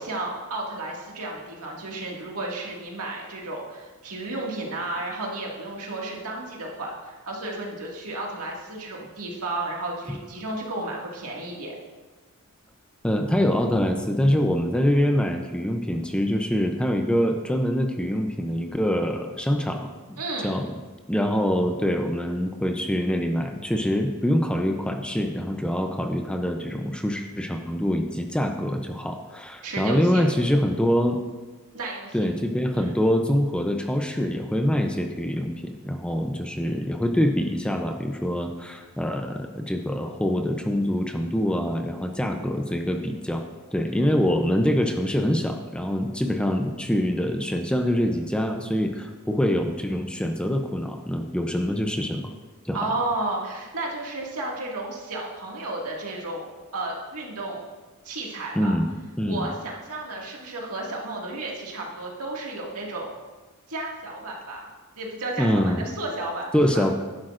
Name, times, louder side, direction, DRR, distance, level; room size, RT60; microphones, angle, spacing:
voice 1, 0.0-11.7 20.2-20.6 29.6-30.2 31.7-32.2 32.7-32.9 52.7-57.7 58.0-58.7 59.2-63.1 63.7-64.7 65.0-66.9, right 2 dB, 75° right, -2 dB, 2.0 m, -33 dB
voice 2, 13.0-20.7 21.1-31.2 32.1-43.4 43.7-52.3 52.6-52.9 58.6-58.9 59.2-59.5 65.4-65.8 66.5-66.9, equal, 5° left, 4 dB, 0.5 m, -25 dB
11.5 x 10.5 x 2.5 m, 1.3 s
head